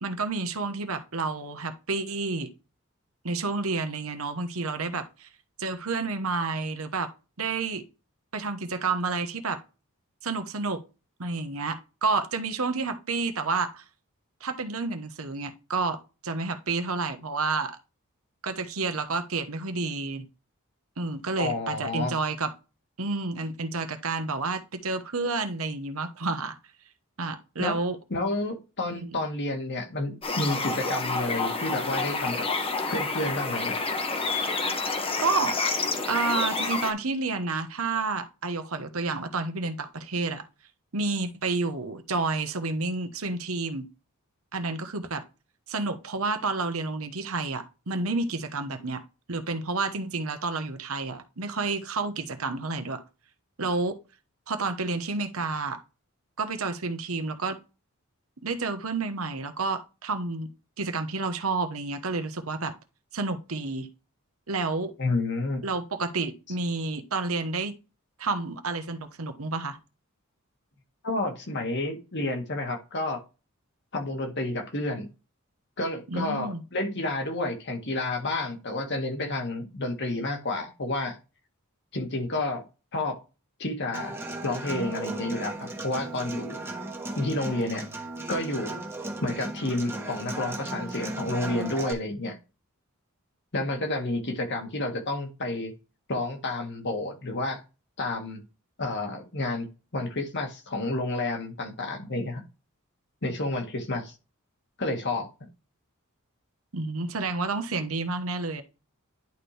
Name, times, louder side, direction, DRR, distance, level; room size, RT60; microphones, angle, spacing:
voice 1, 0.0-2.5 3.2-5.3 5.6-7.1 7.4-7.8 8.3-9.6 10.2-10.8 11.2-13.8 14.4-17.8 18.4-20.3 21.0-22.5 23.0-26.6 27.2-28.0 29.0-29.2 35.2-35.6 36.0-40.4 40.9-43.9 44.5-45.2 45.7-49.0 49.3-53.0 53.6-54.0 54.5-55.8 56.4-57.6 58.4-60.5 60.8-62.7 63.1-63.9 64.5-64.9 65.6-67.7 68.2-69.8 76.1-76.6 106.7-108.6, right 3 dB, 70° right, 1.1 m, -30 dB
voice 2, 21.4-22.1 27.6-27.8 28.1-32.5 32.9-33.8 65.0-65.6 71.0-73.2 73.9-75.1 75.8-81.2 81.9-82.6 82.9-83.2 83.6-84.2 84.4-86.7 87.2-87.9 88.3-88.8 89.2-92.4 93.5-95.7 96.1-97.6 98.0-98.4 98.8-99.7 99.9-102.4 103.2-104.1 104.8-105.3, left 2 dB, 55° left, 1.9 m, -30 dB
sound 1, 30.2-36.9, left 3 dB, 25° left, 1.1 m, -29 dB
Human voice / Acoustic guitar, 83.9-91.9, right 2 dB, 10° right, 1.3 m, -36 dB
11.0 x 4.5 x 3.4 m
head